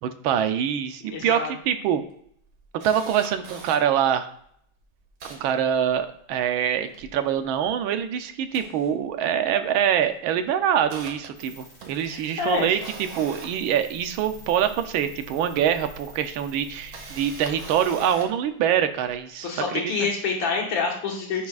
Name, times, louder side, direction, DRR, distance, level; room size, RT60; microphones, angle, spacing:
voice 1, 0.0-2.0 2.8-4.3 5.3-12.8 13.2-19.9, right 9 dB, 80° right, 9 dB, 1.5 m, -24 dB
voice 2, 1.0-1.5 12.0-12.7 19.4-21.5, left 4 dB, 70° left, 0 dB, 2.1 m, -27 dB
Camera, 1.2-1.3 1.6-1.7 2.1-3.8 4.4-4.5 4.8-6.4 6.7-8.0 8.4-9.5 9.8-10.1 10.5-14.5 15.6-15.7 16.6-18.4 19.0-19.1, right 4 dB, 60° right, 1.9 m, -43 dB
sound 1, 11.4-18.1, right 1 dB, 40° left, 2.7 m, -47 dB
10.0 x 5.9 x 2.4 m, 0.66 s
omnidirectional pair, 2.2 m